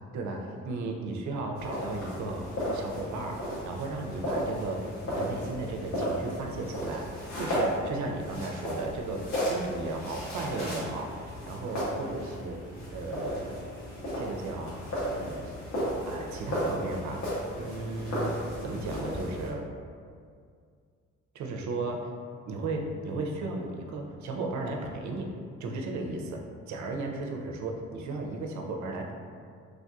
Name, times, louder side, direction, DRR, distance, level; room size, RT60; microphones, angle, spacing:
voice 1, 0.6-13.6 14.1-14.8 15.1-15.6 16.0-19.6 21.3-22.1 22.5-25.3 25.6-29.1, right 2 dB, 70° right, 2 dB, 0.5 m, -35 dB
sound 1, 1.5-19.5, equal, 65° left, 1.3 m, -34 dB
3.3 x 2.5 x 2.3 m, 2.2 s
cardioid pair, 90°, 30 cm